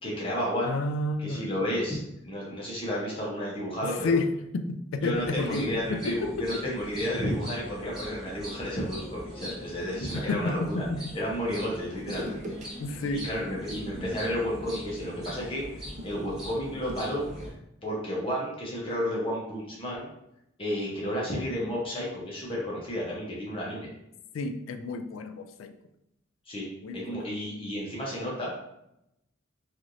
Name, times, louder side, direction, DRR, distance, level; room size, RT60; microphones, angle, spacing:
voice 1, 0.0-0.8 1.2-2.0 2.2-4.2 5.0-10.8 11.1-12.5 13.1-15.8 16.0-17.3 17.8-20.1 20.6-23.9 26.5-26.7 26.9-28.6, equal, 25° left, -4 dB, 0.7 m, -32 dB
voice 2, 0.6-1.5 3.8-6.6 10.1-11.0 12.8-13.2 24.3-25.7 26.8-27.2, left 2 dB, 80° left, 8 dB, 0.3 m, -30 dB
sound 1, 5.1-17.5, equal, ahead, 1.0 m, -42 dB
sound 2, 9.6-11.0 12.0-12.7 13.0-13.2 13.5-17.6, equal, 35° right, 0.4 m, -44 dB
3.1 x 2.5 x 2.6 m, 0.82 s
head